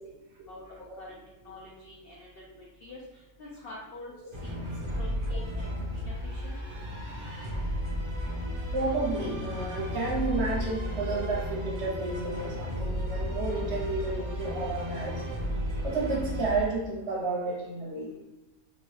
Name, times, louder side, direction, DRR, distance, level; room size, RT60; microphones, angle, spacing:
voice 1, 0.5-2.3 2.6-4.1 4.4-4.6 4.9-6.6, left 2 dB, 85° left, -3 dB, 0.5 m, -46 dB
sound 1, 4.3-16.6, equal, 35° right, 0.5 m, -33 dB
voice 2, 7.1-7.7 8.7-15.2 15.8-18.1, right 3 dB, 60° right, -3 dB, 0.8 m, -32 dB
2.8 x 2.3 x 3.1 m, 0.97 s
omnidirectional pair, 1.6 m